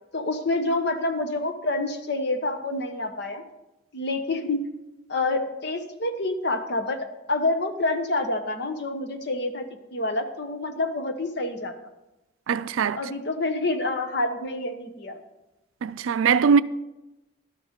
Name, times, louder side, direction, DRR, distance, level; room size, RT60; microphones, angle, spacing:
voice 1, 0.1-3.4 3.9-4.6 5.1-7.0 7.3-9.6 9.9-11.7 12.8-15.2, left 2 dB, 55° left, 1.0 m, -27 dB
voice 2, 12.5-13.0 15.8-16.6, right 6 dB, 85° right, 0.4 m, -21 dB
12.0 x 6.3 x 5.2 m
head